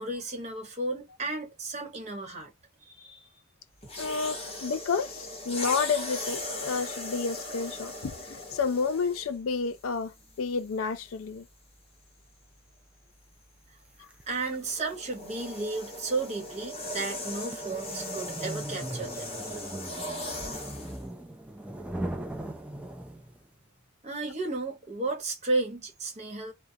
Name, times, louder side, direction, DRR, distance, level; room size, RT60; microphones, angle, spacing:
voice 1, 0.0-2.5 2.8-3.3 14.3-19.6 24.0-26.5, right 3 dB, 35° right, 1.0 m, -33 dB
sound 1, 3.8-9.4 10.2-10.4 14.3-21.0, left 1 dB, 30° left, 1.0 m, -38 dB
voice 2, 4.0-11.5, left 5 dB, 80° left, 0.4 m, -30 dB
sound 2, 14.1-23.5, right 1 dB, 5° right, 0.3 m, -40 dB
2.4 x 2.1 x 2.6 m
head